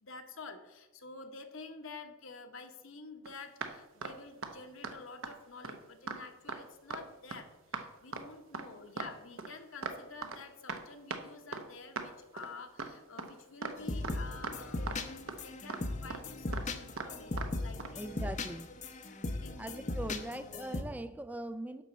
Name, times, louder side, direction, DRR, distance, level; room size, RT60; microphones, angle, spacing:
voice 1, 0.0-18.3 19.0-20.3, left 4 dB, 65° left, 6 dB, 1.1 m, -50 dB
sound 1, 3.3-3.4 3.6-3.7 4.0-4.2 4.4-4.5 4.8-4.9 5.2-5.3 5.6-5.8 6.1-6.2 6.5-6.6 6.9-7.0 7.3-7.4 7.7-7.8 8.1-8.2 8.5-8.7 9.0-9.1 9.4-10.0 10.2-10.4 10.7-10.8 11.1-11.2 11.5-11.7 12.0-12.1 12.4-12.5 12.8-12.9 13.2-13.3 13.6-13.8 14.0-14.2 14.4-14.6 14.9-15.0 15.3-15.4 15.7-15.8 16.1-16.2 16.5-16.7 17.0-17.1 17.4-17.5 17.8-17.9, right 4 dB, 65° right, 0.9 m, -39 dB
sound 2, 13.8-20.8, left 2 dB, 35° left, 0.7 m, -38 dB
voice 2, 17.9-18.7 19.6-21.8, right 1 dB, 5° right, 12 dB, 0.3 m, -41 dB
10.5 x 4.2 x 7.3 m, 1.0 s
head